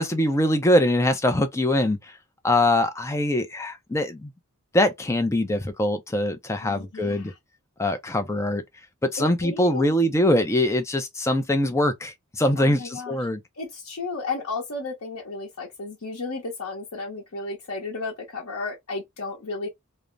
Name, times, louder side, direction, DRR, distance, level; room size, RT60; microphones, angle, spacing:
voice 1, 0.0-2.0 2.4-4.3 4.7-7.3 7.8-8.6 9.0-13.4, left 1 dB, 15° left, 0.4 m, -23 dB
voice 2, 6.6-7.3 9.2-9.9 12.6-13.2 13.6-19.7, left 3 dB, 80° left, 0.8 m, -33 dB
2.5 x 2.0 x 3.1 m
head